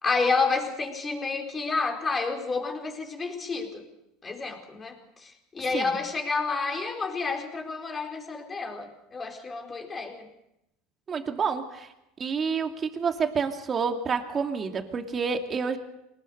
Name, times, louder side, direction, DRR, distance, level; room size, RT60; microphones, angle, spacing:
voice 1, 0.0-3.8 4.2-10.3, left 4 dB, 20° left, 3 dB, 4.7 m, -30 dB
voice 2, 11.1-11.9 12.2-15.8, right 5 dB, 30° right, 5 dB, 2.6 m, -28 dB
24.0 x 19.5 x 6.7 m, 0.84 s
supercardioid pair, 115°, 0 cm